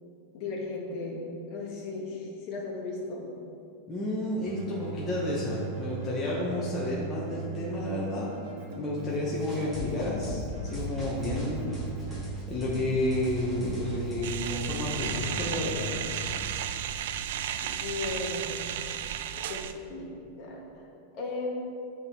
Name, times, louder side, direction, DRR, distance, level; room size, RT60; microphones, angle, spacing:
voice 1, 0.3-1.2 1.5-3.2 17.6-18.6 19.3-20.1 20.4-20.8 21.1-21.5, left 3 dB, 40° left, -4 dB, 1.5 m, -36 dB
voice 2, 3.9-8.3 8.8-11.8 12.5-15.9, left 1 dB, 15° left, -7 dB, 0.9 m, -31 dB
Keyboard (musical), 4.4-16.5, right 4 dB, 45° right, 1.3 m, -40 dB
sound 1, 9.4-15.5, left 1 dB, ahead, 1.6 m, -39 dB
sound 2, 14.2-19.7, right 10 dB, 70° right, 0.3 m, -34 dB
8.5 x 3.6 x 4.3 m, 2.5 s
supercardioid pair, 160°, 0 cm